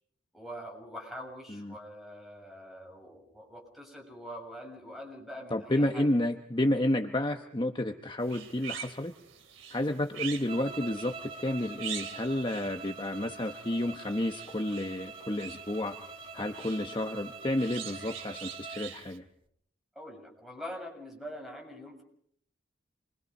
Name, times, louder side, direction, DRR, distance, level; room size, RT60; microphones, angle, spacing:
voice 1, 0.3-6.1 20.0-22.0, equal, ahead, 1 dB, 7.3 m, -44 dB
voice 2, 5.5-9.1 9.7-16.0 16.3-19.2, left 1 dB, 25° left, 5 dB, 1.1 m, -31 dB
sound 1, 8.2-19.2, right 8 dB, 80° right, 2.7 m, -45 dB
sound 2, 10.5-18.9, right 5 dB, 25° right, 2.0 m, -45 dB
28.0 x 23.0 x 5.5 m, 0.67 s
head